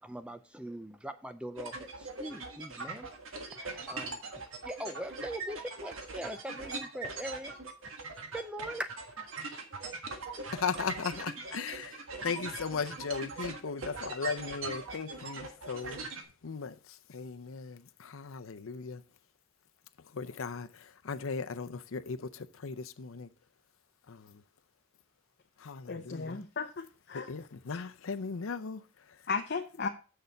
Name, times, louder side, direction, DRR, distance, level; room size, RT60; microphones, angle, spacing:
sound 1, 1.6-16.2, right 3 dB, 85° right, 1.5 m, -41 dB
voice 1, 4.8-5.6 5.8-5.9 6.2-6.3 7.0-7.3 8.5-8.8, equal, 5° right, 0.4 m, -37 dB
voice 2, 10.5-19.0 20.0-23.3 24.1-24.4 25.6-26.4 27.1-29.3, left 5 dB, 90° left, 0.6 m, -38 dB
voice 3, 25.9-27.3 29.3-29.9, left 5 dB, 55° left, 0.7 m, -35 dB
6.9 x 6.6 x 5.1 m
head